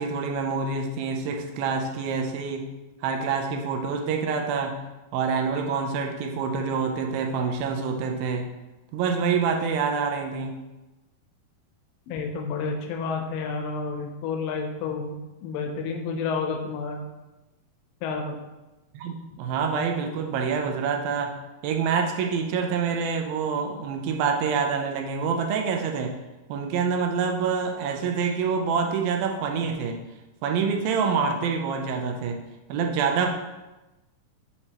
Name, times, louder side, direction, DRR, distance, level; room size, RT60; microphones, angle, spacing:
voice 1, 0.0-2.7 3.0-4.8 5.1-8.5 8.9-10.6 18.9-21.3 21.6-26.2 26.5-30.0 30.4-32.4 32.7-33.3, right 5 dB, 80° right, 3 dB, 2.4 m, -26 dB
voice 2, 12.1-17.0 18.0-18.3, left 4 dB, 75° left, 2 dB, 2.3 m, -30 dB
8.3 x 4.2 x 2.9 m, 1.1 s
omnidirectional pair, 4.2 m